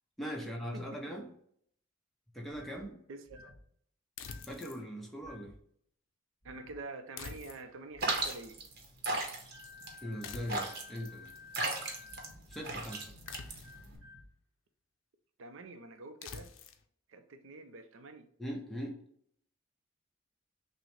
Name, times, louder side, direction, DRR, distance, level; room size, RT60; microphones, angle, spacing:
voice 1, 0.2-1.3 2.3-3.0 4.5-5.6 10.0-11.3 12.5-13.1 18.4-19.0, equal, ahead, 0.6 m, -40 dB
sound 1, 2.5-2.9 3.3-3.6 4.2-4.6 5.2-5.6 6.4-6.8 7.9-8.3 9.5-14.3, left 3 dB, 35° left, 1.5 m, -53 dB
voice 2, 3.1-3.5 6.4-8.6 15.4-16.5 17.1-18.3, right 3 dB, 75° right, 0.5 m, -47 dB
sound 2, 4.2-4.8 7.2-7.9 10.2-10.8 13.3-13.9 16.2-16.8, left 6 dB, 80° left, 0.5 m, -46 dB
sound 3, 8.0-14.0, right 2 dB, 50° right, 0.9 m, -36 dB
6.1 x 2.1 x 3.1 m
head